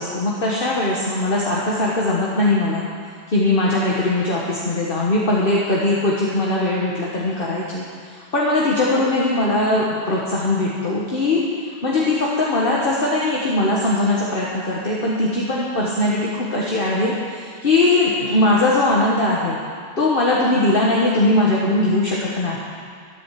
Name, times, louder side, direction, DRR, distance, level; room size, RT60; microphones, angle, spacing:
voice 1, 0.0-2.9 3.3-7.8 8.1-19.6 20.0-22.6, left 2 dB, 55° left, -5 dB, 1.7 m, -20 dB
13.5 x 8.9 x 7.6 m, 2.2 s
omnidirectional pair, 1.1 m